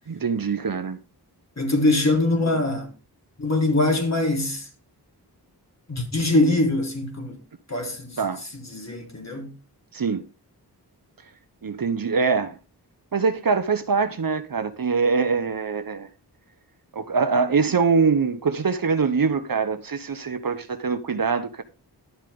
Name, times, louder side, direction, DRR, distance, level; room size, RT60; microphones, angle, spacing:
voice 1, 0.1-1.0 8.2-8.4 9.9-10.2 11.6-12.6 13.1-16.1 16.9-21.6, right 5 dB, 60° right, 1.1 m, -23 dB
voice 2, 1.6-2.9 3.4-4.7 5.9-7.4 7.7-8.2 8.5-9.5, left 2 dB, 40° left, 3.9 m, -23 dB
12.0 x 7.4 x 3.6 m
cardioid pair, 50°, 40 cm